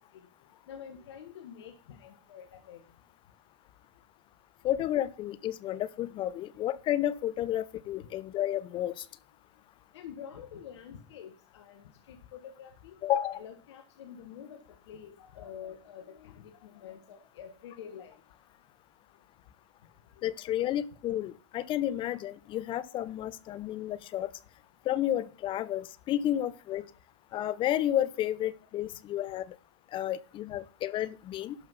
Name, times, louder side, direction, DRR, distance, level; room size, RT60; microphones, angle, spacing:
voice 1, 0.7-2.8 8.0-8.1 9.9-11.8 12.1-13.0 13.3-18.2 20.4-20.5 23.4-23.6 26.4-26.5, left 8 dB, 65° left, 7 dB, 1.4 m, -47 dB
voice 2, 4.6-9.0 13.0-13.4 20.2-24.3 24.9-26.9 27.3-29.6 29.9-31.6, left 12 dB, 35° left, 19 dB, 0.7 m, -31 dB
11.5 x 5.5 x 5.7 m, 0.36 s
figure-of-eight pair, 95°, 15 cm